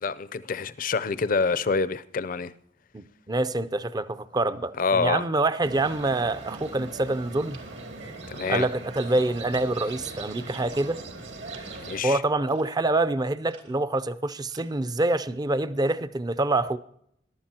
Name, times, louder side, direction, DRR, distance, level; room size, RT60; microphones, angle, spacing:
voice 1, 0.0-2.5 4.8-5.2 8.3-8.7 11.8-12.2, left 4 dB, 50° left, 0.5 m, -26 dB
voice 2, 2.9-7.6 8.5-11.0 12.0-16.8, right 2 dB, 20° right, 0.5 m, -26 dB
sound 1, 5.6-12.0, right 3 dB, 70° right, 2.2 m, -40 dB
sound 2, 6.5-6.8 7.5-8.0 8.5-8.7 9.5-10.0 10.5-11.0 11.5-11.9 12.5-12.7 13.5-13.9 14.5-14.9, right 4 dB, 90° right, 2.5 m, -53 dB
21.5 x 12.0 x 2.9 m
head